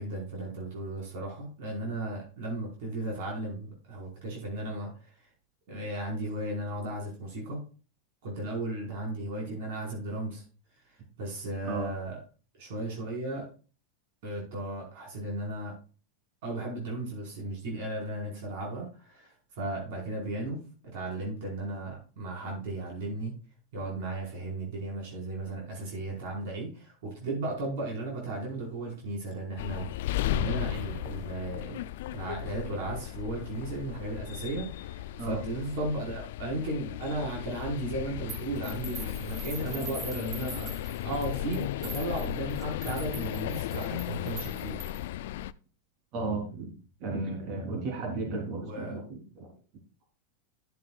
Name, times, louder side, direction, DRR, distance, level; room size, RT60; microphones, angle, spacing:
voice 1, 0.0-5.2 5.7-7.6 8.2-10.4 10.9-12.2 12.6-13.5 14.2-15.7 16.4-20.6 20.9-23.3 23.7-31.8 32.1-40.7 41.0-44.8 48.6-49.0, right 2 dB, 65° right, -1 dB, 4.8 m, -35 dB
sound 1, 29.6-45.5, left 13 dB, 70° left, 0.4 m, -35 dB
sound 2, 38.3-45.1, right 3 dB, 25° right, 3.2 m, -44 dB
voice 2, 46.1-46.7 47.0-49.5, right 3 dB, 50° right, 1 dB, 3.7 m, -34 dB
12.5 x 7.7 x 2.4 m, 0.36 s
hypercardioid pair, 115°, 0 cm